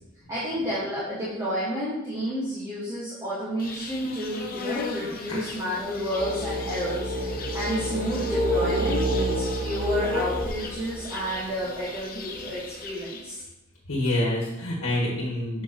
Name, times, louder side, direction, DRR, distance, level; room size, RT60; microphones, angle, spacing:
voice 1, 0.3-13.4, equal, 15° right, -10 dB, 1.5 m, -31 dB
Insect, 3.6-13.4, left 4 dB, 45° left, 0.7 m, -38 dB
sound 1, 6.2-11.3, equal, 40° right, 1.1 m, -28 dB
voice 2, 13.8-15.6, left 1 dB, 85° left, -3 dB, 1.4 m, -27 dB
7.6 x 5.3 x 3.0 m, 0.93 s
head